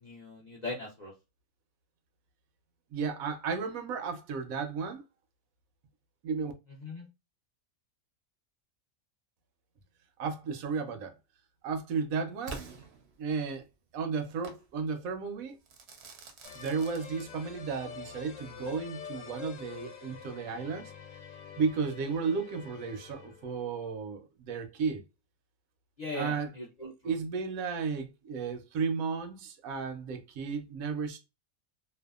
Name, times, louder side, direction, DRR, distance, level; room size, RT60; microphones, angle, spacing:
voice 1, 0.0-1.1 6.8-7.1 26.0-27.1, left 2 dB, 50° left, 0.5 m, -39 dB
voice 2, 2.9-5.0 6.2-6.5 10.2-11.1 11.6-12.6 13.2-13.6 13.9-15.6 16.5-20.9 21.6-25.0 26.1-26.5 27.0-31.2, right 5 dB, 85° right, 1.0 m, -33 dB
Crackle / Fireworks, 12.5-13.6 14.4-14.7 15.7-17.7, right 4 dB, 65° right, 0.7 m, -46 dB
sound 1, 16.4-23.6, left 7 dB, 70° left, 0.9 m, -46 dB
2.7 x 2.1 x 2.3 m
omnidirectional pair, 1.4 m